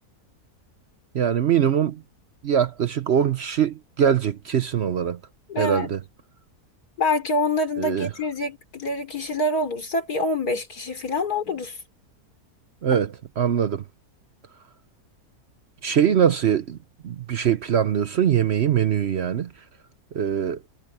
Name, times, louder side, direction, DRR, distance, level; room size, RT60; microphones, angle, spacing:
voice 1, 1.1-2.0 2.4-5.2 5.6-6.0 7.8-8.1 12.8-13.8 15.8-16.8 17.0-19.5 20.1-20.6, right 8 dB, 55° right, 0.8 m, -22 dB
voice 2, 5.5-5.9 7.0-11.8 12.9-13.0, left 2 dB, 70° left, 4.0 m, -26 dB
omnidirectional pair, 1.7 m